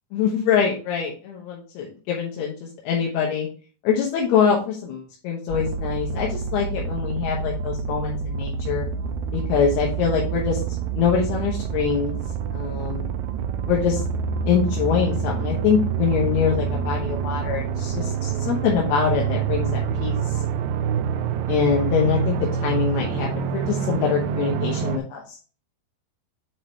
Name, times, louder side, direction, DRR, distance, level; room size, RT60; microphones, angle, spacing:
voice 1, 0.1-2.5 2.8-3.5 3.8-8.9 9.3-10.6 11.0-12.2 12.5-13.1 13.6-14.0 14.5-20.3 21.5-22.4 22.6-25.4, left 7 dB, 80° left, -2 dB, 3.2 m, -24 dB
sound 1, 5.5-25.0, right 7 dB, 90° right, 2.0 m, -27 dB
8.0 x 4.6 x 3.2 m, 0.38 s
omnidirectional pair, 4.8 m